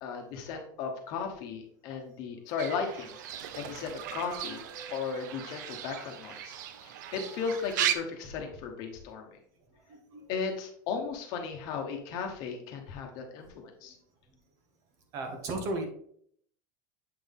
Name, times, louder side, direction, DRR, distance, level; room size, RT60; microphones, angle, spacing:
voice 1, 0.0-3.1 3.5-4.6 4.9-9.4 10.3-14.0, left 5 dB, 45° left, 3 dB, 1.2 m, -36 dB
Fowl / Bird, 2.6-8.0, right 10 dB, 85° right, 0.7 m, -36 dB
voice 2, 9.9-10.3 15.1-15.9, right 2 dB, 35° right, 5 dB, 1.1 m, -35 dB
7.6 x 4.1 x 3.6 m, 0.64 s
supercardioid pair, 175°, 10 cm